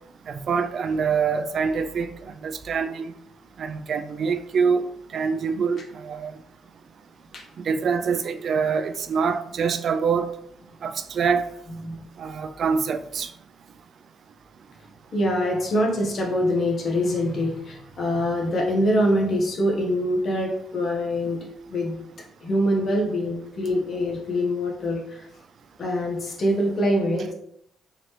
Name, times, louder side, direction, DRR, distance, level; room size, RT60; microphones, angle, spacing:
voice 1, 0.3-3.1 3.6-6.3 7.7-10.3 10.8-11.5 12.2-13.3, right 5 dB, 55° right, 0.4 m, -25 dB
voice 2, 15.1-22.0 22.4-25.3 25.8-27.3, equal, 50° left, 1.0 m, -24 dB
3.8 x 2.9 x 3.2 m
cardioid pair, 90°, 0 cm